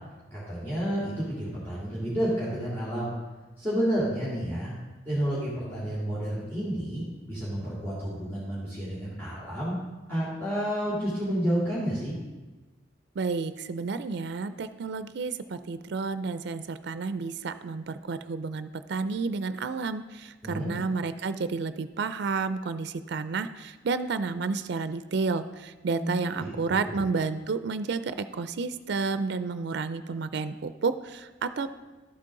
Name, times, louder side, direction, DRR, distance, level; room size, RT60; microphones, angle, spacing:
voice 1, 0.3-3.1 3.6-4.7 5.0-9.7 10.1-12.1 20.4-20.7 26.0-27.0, equal, 15° left, -9 dB, 2.9 m, -30 dB
voice 2, 13.2-31.7, right 4 dB, 65° right, 11 dB, 0.4 m, -31 dB
12.0 x 8.4 x 3.8 m, 1.2 s
head